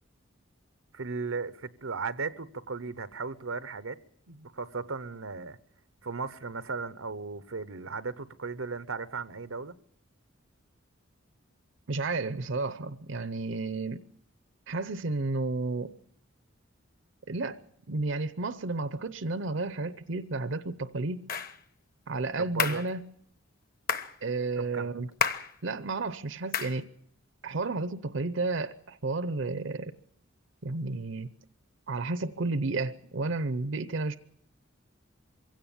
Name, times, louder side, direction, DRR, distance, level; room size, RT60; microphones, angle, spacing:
voice 1, 0.9-4.0 4.3-5.6 6.0-9.7 22.4-22.8 24.6-25.0, right 4 dB, 90° right, 0.9 m, -36 dB
voice 2, 11.9-14.1 14.7-15.9 17.3-17.6 17.9-21.3 22.1-23.0 24.2-25.1 25.6-26.9 27.4-29.9 30.6-31.3 31.9-34.2, right 3 dB, 65° right, 0.7 m, -32 dB
sound 1, 21.3-21.6 22.6-22.9 23.9-24.1 25.2-25.5 26.5-26.8, left 6 dB, 45° left, 1.2 m, -30 dB
23.0 x 16.5 x 7.1 m
head